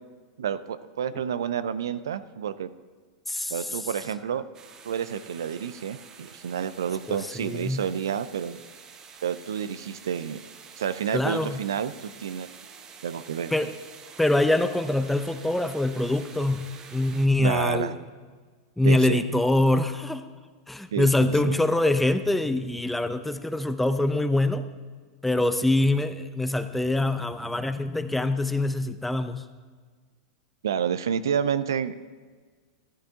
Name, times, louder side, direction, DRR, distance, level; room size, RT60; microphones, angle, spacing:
voice 1, 0.4-2.7 3.5-4.4 4.9-8.6 9.2-10.4 10.8-12.5 13.0-13.7 17.4-17.9 18.8-19.2 20.9-21.6 30.6-31.9, right 8 dB, 75° right, 14 dB, 0.4 m, -29 dB
voice 2, 3.3-3.7 7.1-7.9 11.1-11.6 13.5-13.7 14.2-17.9 18.8-20.2 20.7-24.7 25.2-29.5, left 2 dB, 5° left, 10 dB, 0.6 m, -24 dB
sound 1, 4.5-17.3, right 6 dB, 30° right, 1.0 m, -48 dB
14.0 x 12.0 x 2.8 m, 1.5 s
hypercardioid pair, 95°, 2 cm